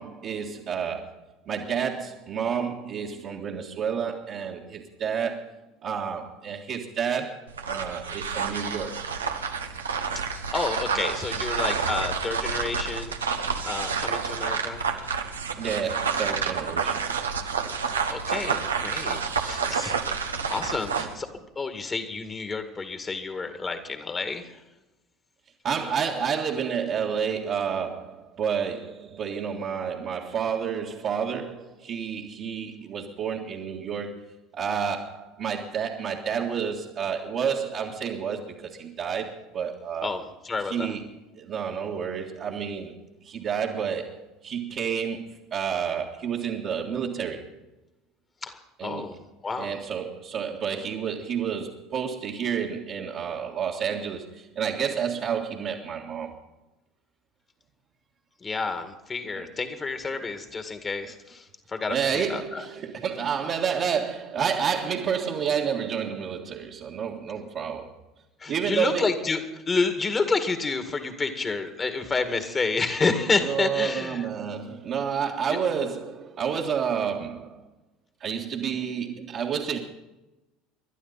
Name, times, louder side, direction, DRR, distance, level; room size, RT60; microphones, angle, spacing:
voice 1, 0.0-5.6 5.8-9.0 15.6-17.1 21.0-21.1 25.6-40.1 40.7-43.0 43.2-47.6 48.8-49.1 49.6-56.4 59.3-59.5 61.9-67.9 68.5-69.2 73.3-77.6 78.2-79.8, right 7 dB, 50° right, -4 dB, 1.8 m, -30 dB
sound 1, 7.5-21.1, right 6 dB, 85° right, 1.1 m, -29 dB
voice 2, 10.2-13.4 13.6-14.8 18.1-20.0 20.5-21.3 21.6-24.6 40.0-40.9 48.4-49.2 49.4-49.7 58.4-62.6 68.4-74.3 75.5-75.6, left 4 dB, 25° left, 8 dB, 2.1 m, -29 dB
27.0 x 11.5 x 4.2 m, 1.0 s
hypercardioid pair, 70°, 0 cm